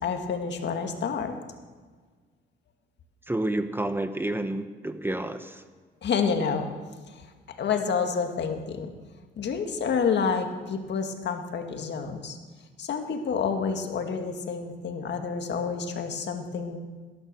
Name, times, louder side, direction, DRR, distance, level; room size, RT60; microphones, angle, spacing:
voice 1, 0.0-1.3 6.0-6.7 7.1-7.2 7.6-8.9 9.4-12.4 12.8-16.8, left 6 dB, 60° left, 5 dB, 2.1 m, -28 dB
voice 2, 3.3-5.6, right 1 dB, 10° right, 9 dB, 1.1 m, -29 dB
18.5 x 10.5 x 6.9 m, 1.5 s
cardioid pair, 90°, 20 cm